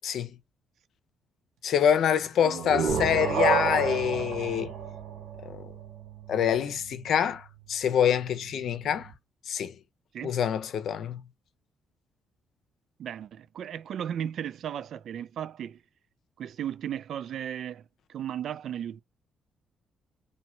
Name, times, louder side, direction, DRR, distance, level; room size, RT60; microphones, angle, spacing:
voice 1, 1.6-4.7 5.4-5.7 6.3-9.1 9.5-9.7 10.2-11.2, left 8 dB, 65° left, 0.8 m, -26 dB
sound 1, 2.4-6.0, right 6 dB, 85° right, 0.8 m, -30 dB
sound 2, 2.9-9.1, right 8 dB, 25° right, 1.7 m, -42 dB
voice 2, 13.0-15.8 16.4-19.0, right 9 dB, 65° right, 0.4 m, -35 dB
2.9 x 2.8 x 4.3 m
cardioid pair, 90°, 0 cm